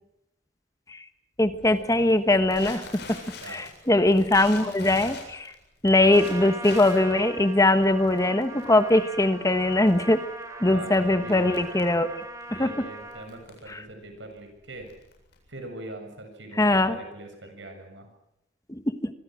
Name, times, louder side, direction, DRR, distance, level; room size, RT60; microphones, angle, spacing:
voice 1, 1.4-3.2 3.4-5.5 5.8-10.2 10.6-12.1 12.5-12.9 13.7-13.8 16.6-17.0 18.7-19.1, left 2 dB, 20° left, 10 dB, 1.3 m, -21 dB
Crackle, 1.5-15.7, left 4 dB, 60° left, 8.0 m, -46 dB
Trumpet, 6.0-13.3, right 2 dB, 15° right, 3.8 m, -40 dB
voice 2, 10.7-11.6 12.5-14.9 15.5-18.1, right 1 dB, 75° right, 5 dB, 7.4 m, -42 dB
25.5 x 25.5 x 6.4 m, 0.82 s
head